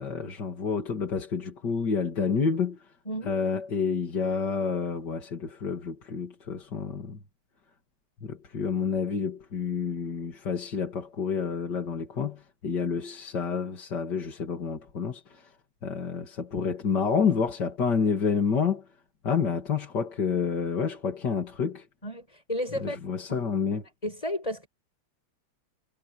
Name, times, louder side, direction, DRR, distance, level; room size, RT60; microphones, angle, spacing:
voice 1, 0.0-2.9 3.3-7.2 8.2-15.5 15.8-18.9 19.2-21.9 22.8-23.8, left 6 dB, 50° left, 3.0 m, -29 dB
voice 2, 3.1-3.4 22.0-23.0 23.3-23.4 24.0-24.7, left 1 dB, 15° left, 7.3 m, -32 dB
omnidirectional pair, 2.4 m